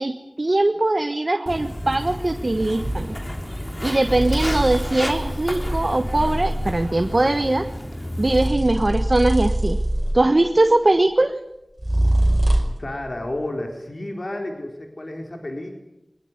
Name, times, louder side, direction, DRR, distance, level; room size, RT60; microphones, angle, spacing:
voice 1, 0.0-3.1 3.8-7.7 8.2-9.8 10.1-11.3, right 2 dB, 55° right, 7 dB, 1.3 m, -21 dB
Walk footsteps, 1.5-8.5, equal, 25° left, 3.3 m, -31 dB
sound 1, 2.7-3.1 4.0-7.0 8.2-10.4 11.8-12.9, right 1 dB, 35° right, 4.8 m, -23 dB
voice 2, 12.8-15.8, left 1 dB, 60° left, 2 dB, 4.2 m, -31 dB
23.0 x 20.5 x 9.8 m, 0.91 s
wide cardioid pair, 45°, 0 cm